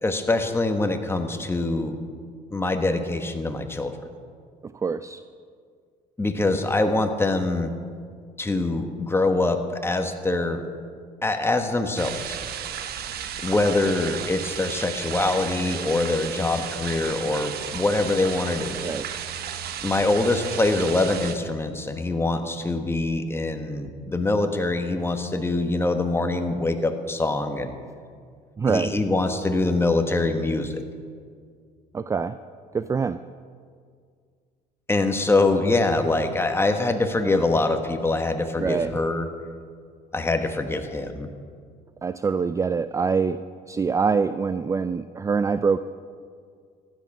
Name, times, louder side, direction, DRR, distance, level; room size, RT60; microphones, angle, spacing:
voice 1, 0.0-2.0 2.5-3.9 6.2-7.7 8.4-10.6 11.2-12.4 13.4-18.9 19.8-27.8 28.7-30.8 34.9-39.3 40.1-41.3, left 2 dB, 15° left, 6 dB, 1.3 m, -24 dB
voice 2, 4.7-5.2 18.8-19.1 28.6-28.9 31.9-32.4 32.7-33.2 38.6-38.9 42.0-43.4 43.7-45.8, right 5 dB, 20° right, 12 dB, 0.3 m, -24 dB
sound 1, 12.0-21.4, right 9 dB, 65° right, 1.1 m, -34 dB
15.0 x 11.5 x 6.1 m, 2.1 s
cardioid pair, 110°, 17 cm